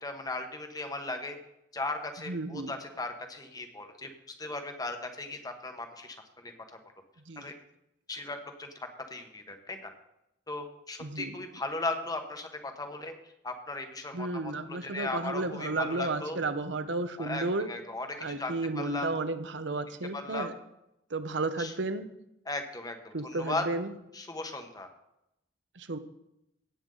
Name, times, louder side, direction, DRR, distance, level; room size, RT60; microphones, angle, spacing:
voice 1, 0.0-1.4 1.7-4.1 4.4-6.2 6.4-6.8 7.4-7.5 8.1-9.9 10.5-13.1 13.4-16.4 17.2-18.1 18.4-19.1 20.1-20.5 21.6-21.7 22.4-23.6 24.1-24.9, left 2 dB, 20° left, 6 dB, 1.2 m, -37 dB
voice 2, 2.3-2.7 7.3-7.4 11.0-11.3 14.1-17.7 18.2-20.5 21.1-22.1 23.1-23.9 25.8-26.0, right 2 dB, 65° right, 11 dB, 0.8 m, -33 dB
17.0 x 8.0 x 3.9 m, 0.87 s
head